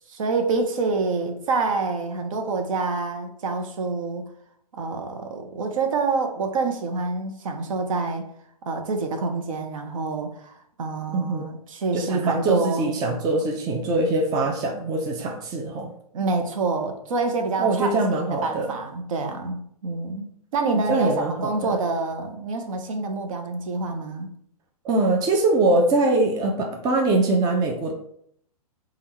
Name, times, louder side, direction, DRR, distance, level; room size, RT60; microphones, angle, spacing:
voice 1, 0.1-4.2 4.7-8.2 8.6-12.9 16.1-24.3, right 3 dB, 55° right, 4 dB, 0.7 m, -27 dB
voice 2, 11.1-11.5 11.9-15.9 17.6-18.7 20.9-21.5 24.8-27.9, right 2 dB, 20° right, 1 dB, 0.5 m, -23 dB
3.5 x 2.4 x 4.3 m, 0.69 s
figure-of-eight pair, 115°, 20 cm